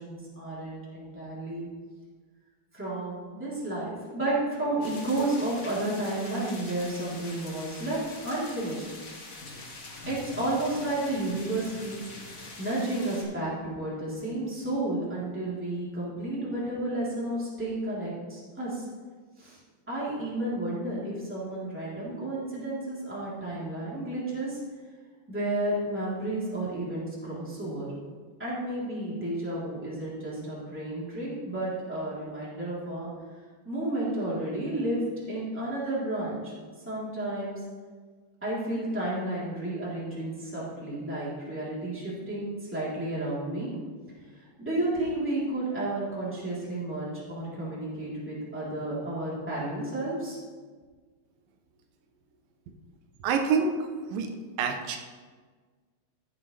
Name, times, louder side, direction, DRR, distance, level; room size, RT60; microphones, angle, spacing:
voice 1, 0.0-1.7 2.7-8.0 8.2-8.8 10.0-12.0 12.3-18.8 19.4-19.6 19.9-24.6 25.3-27.9 28.4-33.1 33.6-35.0 35.3-36.5 36.8-37.6 38.4-43.7 44.6-50.4, right 1 dB, 5° right, -8 dB, 2.7 m, -32 dB
sound 1, 4.8-13.2, left 2 dB, 60° left, 0.8 m, -44 dB
voice 2, 53.2-54.3 54.6-55.0, right 5 dB, 85° right, 4 dB, 2.5 m, -27 dB
14.5 x 7.5 x 3.2 m, 1.5 s
omnidirectional pair, 3.9 m